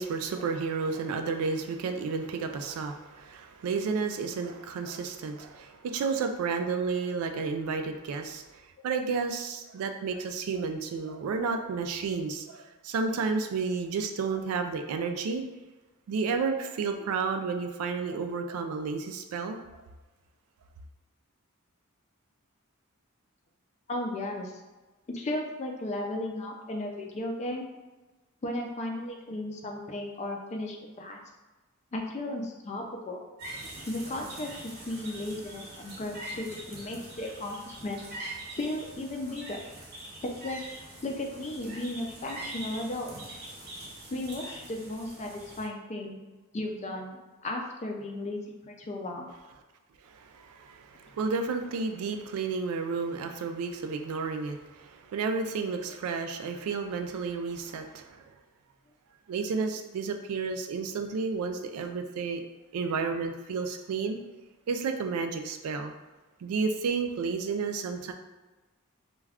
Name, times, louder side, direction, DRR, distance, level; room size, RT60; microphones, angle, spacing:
voice 1, 0.0-8.4 8.8-15.4 16.1-19.6 50.0-58.2 59.3-62.4 62.7-64.2 64.7-65.9 66.4-68.1, right 4 dB, 80° right, 6 dB, 0.3 m, -31 dB
voice 2, 23.9-24.5 25.1-27.7 28.4-31.2 31.9-33.2 33.9-38.0 38.6-39.6 40.2-40.6 41.0-43.4 44.1-46.2 46.5-49.3, left 1 dB, 30° left, 2 dB, 0.4 m, -35 dB
sound 1, 33.4-45.7, right 1 dB, 50° right, 0.7 m, -43 dB
2.3 x 2.2 x 3.4 m, 1.2 s
head